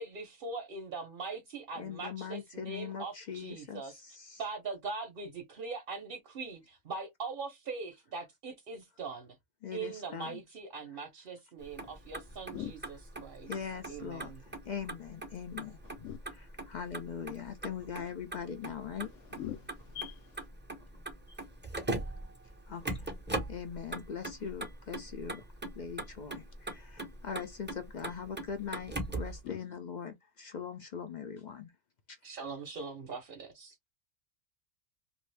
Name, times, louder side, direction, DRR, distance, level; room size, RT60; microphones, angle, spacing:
voice 1, 0.0-3.9 4.4-9.4 9.7-13.5 13.9-14.4 32.2-33.7, right 4 dB, 50° right, 0.9 m, -41 dB
voice 2, 1.8-4.4 9.6-10.4 13.5-16.1 16.3-19.4 21.3-21.4 22.7-23.1 23.5-25.4 25.7-31.7 32.1-32.2, left 7 dB, 60° left, 0.4 m, -41 dB
Motor vehicle (road), 11.6-29.4, right 2 dB, 15° right, 0.4 m, -41 dB
voice 3, 19.3-20.5 29.4-29.6, left 12 dB, 85° left, 1.0 m, -41 dB
2.6 x 2.4 x 3.2 m
omnidirectional pair, 1.3 m